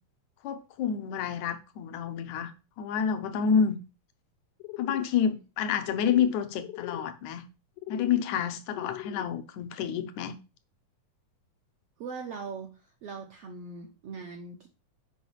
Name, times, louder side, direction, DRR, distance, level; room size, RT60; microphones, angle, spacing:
voice 1, 0.4-2.5 2.8-3.8 4.8-7.4 7.9-10.4, left 7 dB, 70° left, 2.1 m, -28 dB
sound 1, 4.6-5.1 5.8-6.3 6.6-7.1 7.8-8.2 8.7-9.3, left 16 dB, 85° left, 2.3 m, -40 dB
voice 2, 12.0-12.7 13.0-14.7, right 5 dB, 70° right, 1.4 m, -40 dB
7.8 x 5.3 x 5.5 m
omnidirectional pair, 3.9 m